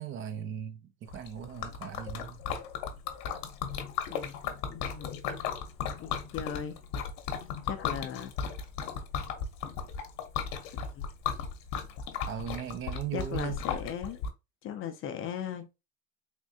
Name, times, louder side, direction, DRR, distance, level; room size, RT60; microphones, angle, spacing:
voice 1, 0.0-2.4 12.3-13.6, right 9 dB, 30° right, 0.5 m, -38 dB
Liquid, 1.1-14.3, left 7 dB, 60° left, 0.9 m, -36 dB
voice 2, 4.1-4.4 4.7-5.2 6.0-6.8 7.6-8.3 10.7-10.9 13.1-14.2 14.6-15.7, left 8 dB, 35° left, 0.5 m, -38 dB
3.6 x 3.0 x 2.7 m
cardioid pair, 150°, 39 cm